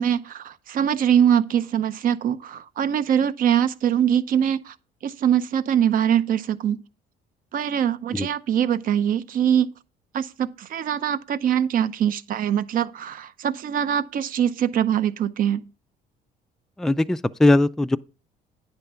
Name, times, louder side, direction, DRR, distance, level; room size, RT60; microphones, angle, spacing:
voice 1, 0.0-4.7 5.0-6.8 7.5-9.7 10.1-15.6, right 9 dB, 55° right, 0.7 m, -23 dB
voice 2, 16.8-18.0, left 2 dB, 5° left, 0.3 m, -19 dB
9.8 x 3.5 x 6.8 m
cardioid pair, 110°, 17 cm